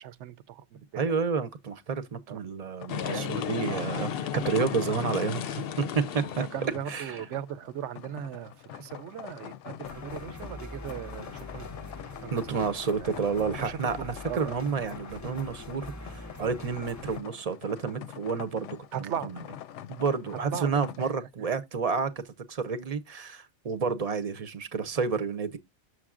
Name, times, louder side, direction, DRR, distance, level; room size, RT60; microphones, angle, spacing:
voice 1, 0.0-1.1 2.3-2.4 3.1-3.3 3.7-3.9 6.1-6.2 6.5-11.7 12.2-12.4 13.0-13.2 13.6-13.8 14.3-14.5 18.9-19.3 20.5-21.1, right 10 dB, 75° right, 0.9 m, -38 dB
voice 2, 0.9-6.4 6.9-7.2 12.3-19.3 19.9-25.6, right 5 dB, 40° right, 0.6 m, -30 dB
sound 1, 2.8-21.0, left 10 dB, 90° left, 0.9 m, -45 dB
sound 2, 2.9-6.9, left 9 dB, 65° left, 0.7 m, -33 dB
sound 3, 9.8-17.2, left 2 dB, 25° left, 0.4 m, -44 dB
7.3 x 6.6 x 2.4 m
omnidirectional pair, 1.2 m